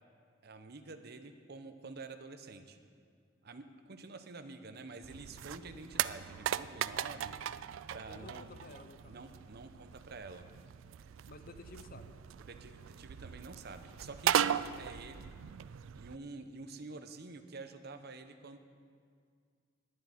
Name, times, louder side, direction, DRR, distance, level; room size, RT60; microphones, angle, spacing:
voice 1, 0.4-2.8 3.4-7.4 7.9-8.5 9.1-10.4 12.4-15.3 15.9-18.6, right 3 dB, 55° right, 8 dB, 0.8 m, -48 dB
sound 1, 5.0-16.2, right 10 dB, 85° right, 0.3 m, -38 dB
voice 2, 8.1-9.2 11.3-12.2, left 3 dB, 50° left, 9 dB, 0.8 m, -52 dB
10.5 x 7.9 x 9.8 m, 2.1 s
head